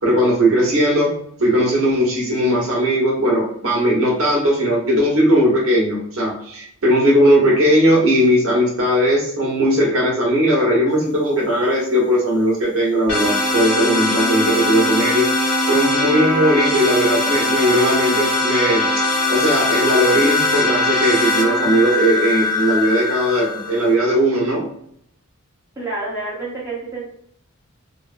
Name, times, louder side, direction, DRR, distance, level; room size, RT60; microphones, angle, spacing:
voice 1, 0.0-1.1 1.4-15.3 15.7-19.0 19.3-24.7, equal, 70° right, -4 dB, 1.1 m, -18 dB
sound 1, 13.1-23.9, left 2 dB, 70° left, 1.3 m, -20 dB
voice 2, 25.8-27.1, right 2 dB, 15° right, -8 dB, 0.9 m, -28 dB
3.2 x 2.0 x 2.5 m, 0.67 s
head